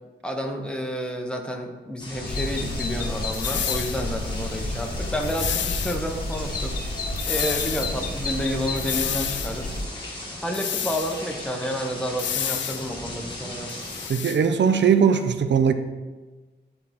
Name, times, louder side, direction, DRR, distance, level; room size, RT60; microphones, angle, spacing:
voice 1, 0.2-6.8 7.3-9.7 10.4-13.7, equal, 5° left, 2 dB, 0.9 m, -30 dB
sound 1, 2.0-14.1, left 1 dB, 25° left, 1.8 m, -37 dB
sound 2, 2.3-9.9, left 2 dB, 55° left, 1.2 m, -31 dB
sound 3, 3.3-4.0 5.2-6.0 7.2-7.9 8.8-9.5 10.5-11.2 12.2-12.9 13.7-14.4, left 9 dB, 85° left, 0.4 m, -29 dB
voice 2, 14.1-15.7, right 7 dB, 75° right, 9 dB, 0.5 m, -19 dB
10.5 x 4.4 x 4.2 m, 1.3 s
wide cardioid pair, 125°, 18 cm